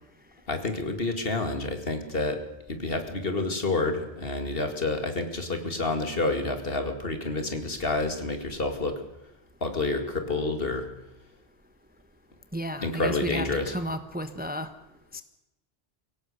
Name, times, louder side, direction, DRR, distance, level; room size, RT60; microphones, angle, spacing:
voice 1, 0.5-2.4 2.7-9.0 9.6-10.9 12.8-13.7, left 2 dB, 55° left, 7 dB, 2.4 m, -29 dB
voice 2, 12.5-14.7 15.1-15.2, equal, 10° right, 10 dB, 1.1 m, -33 dB
22.5 x 17.5 x 6.7 m, 0.94 s
omnidirectional pair, 1.1 m